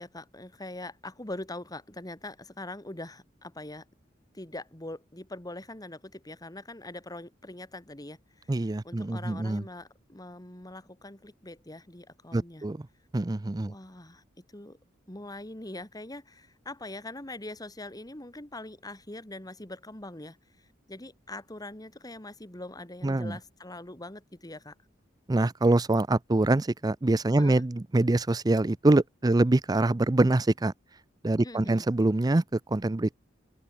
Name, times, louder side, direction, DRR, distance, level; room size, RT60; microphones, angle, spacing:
voice 1, 0.0-3.9 4.3-8.5 8.8-12.7 13.7-14.2 14.5-14.8 15.1-24.7 27.4-27.6 31.4-31.8, left 2 dB, 20° left, 2.3 m, -42 dB
voice 2, 8.5-9.6 12.3-12.9 13.1-13.7 23.0-23.4 25.3-30.7 31.2-33.1, right 2 dB, 20° right, 0.5 m, -25 dB
open air
head